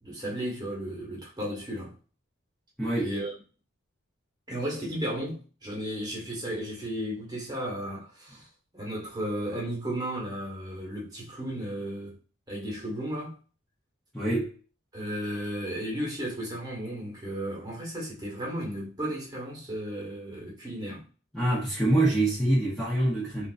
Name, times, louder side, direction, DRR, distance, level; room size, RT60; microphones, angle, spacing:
voice 1, 0.0-1.9 3.0-3.3 4.5-8.5 8.7-12.2 12.5-13.4 14.9-21.1, equal, 20° right, 1.3 m, -34 dB
voice 2, 2.8-3.1 14.1-14.5 21.3-23.5, right 1 dB, ahead, 0.8 m, -25 dB
3.4 x 2.5 x 2.5 m
head